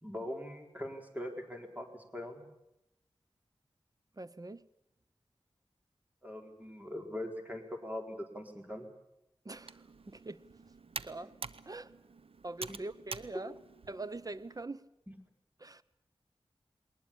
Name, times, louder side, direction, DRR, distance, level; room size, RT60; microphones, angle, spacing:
voice 1, 0.0-2.5 6.2-8.9 12.7-12.8 15.1-15.2, left 1 dB, 15° right, 4.4 m, -42 dB
voice 2, 4.2-4.7 9.4-10.4 11.0-11.3 11.7-11.9 12.4-13.5 13.9-14.8 15.6-15.8, right 2 dB, 40° right, 0.9 m, -43 dB
Computer keyboard, 9.5-14.7, right 4 dB, 70° right, 0.9 m, -47 dB
20.5 x 19.5 x 8.7 m
wide cardioid pair, 60°, 10 cm